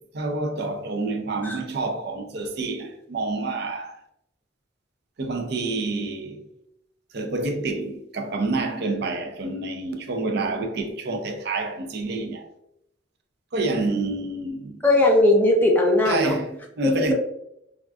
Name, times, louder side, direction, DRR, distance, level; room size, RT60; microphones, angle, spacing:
voice 1, 0.1-4.0 5.2-6.4 7.1-12.5 13.5-14.8 16.0-17.1, right 3 dB, 55° right, 0.4 m, -28 dB
voice 2, 14.8-16.4, left 1 dB, 10° left, 0.5 m, -18 dB
3.5 x 2.3 x 2.4 m
head